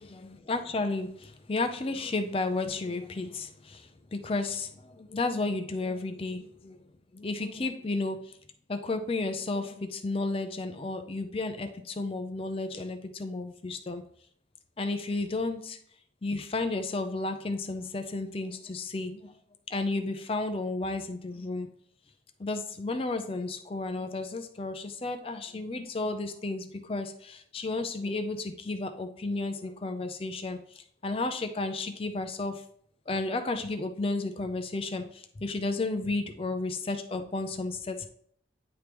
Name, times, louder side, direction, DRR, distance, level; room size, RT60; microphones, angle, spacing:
voice 1, 0.0-6.8 7.1-8.4 8.7-14.0 14.8-15.8 16.2-19.3 19.7-21.7 22.4-32.6 33.1-38.1, left 3 dB, 30° left, 7 dB, 0.4 m, -33 dB
9.4 x 3.4 x 3.0 m, 0.63 s
head